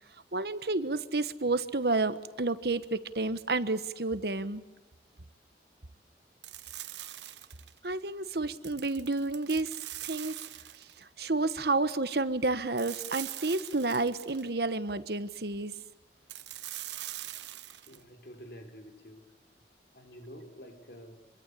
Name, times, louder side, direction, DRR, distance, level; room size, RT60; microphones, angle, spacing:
voice 1, 0.3-4.6 7.8-9.8 10.0-10.4 10.8-15.7, right 3 dB, 65° right, 1.2 m, -30 dB
sound 1, 6.4-7.8 8.5-11.0 12.8-14.5 16.3-18.0, right 14 dB, 85° right, 1.0 m, -42 dB
voice 2, 17.9-19.3 19.9-21.3, equal, 65° left, 4.3 m, -49 dB
26.0 x 24.0 x 8.4 m
head